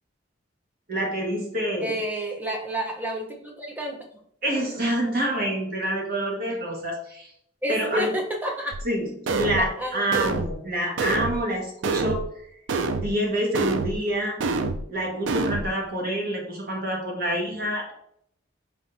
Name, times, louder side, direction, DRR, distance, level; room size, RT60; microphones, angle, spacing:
voice 1, 0.9-1.9 4.4-7.3 7.7-8.2 8.8-12.5 13.0-14.4 14.9-17.9, right 1 dB, 50° right, -1 dB, 1.3 m, -27 dB
voice 2, 1.8-4.0 7.6-8.8 9.5-10.0, right 1 dB, 10° right, 0 dB, 0.7 m, -30 dB
sound 1, 8.7-8.8 9.3-9.7 10.1-10.5 11.0-11.4 11.8-12.3 12.7-13.1 13.5-14.0 14.4-14.8 15.3-15.7, right 3 dB, 65° right, 0.4 m, -26 dB
5.7 x 3.5 x 2.6 m, 0.68 s
head